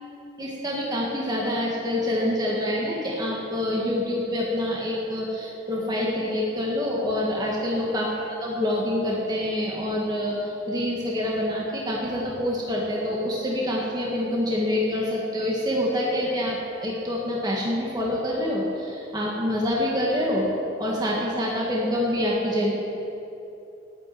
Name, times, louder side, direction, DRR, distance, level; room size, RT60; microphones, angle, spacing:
voice 1, 0.4-8.1 8.4-20.5 20.8-22.7, left 1 dB, 20° right, -4 dB, 1.8 m, -26 dB
10.0 x 9.2 x 9.1 m, 2.9 s
head